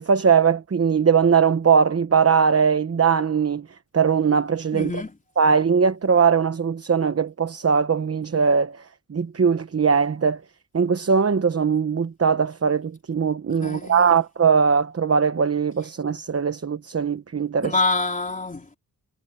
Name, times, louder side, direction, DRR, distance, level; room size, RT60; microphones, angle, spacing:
voice 1, 0.0-3.7 3.9-4.9 5.4-8.8 9.1-10.4 10.7-17.8, right 6 dB, 40° right, 0.9 m, -20 dB
voice 2, 4.7-5.1 13.6-14.2 17.6-18.8, left 3 dB, 20° left, 3.6 m, -26 dB
wide cardioid pair, 135°, 39 cm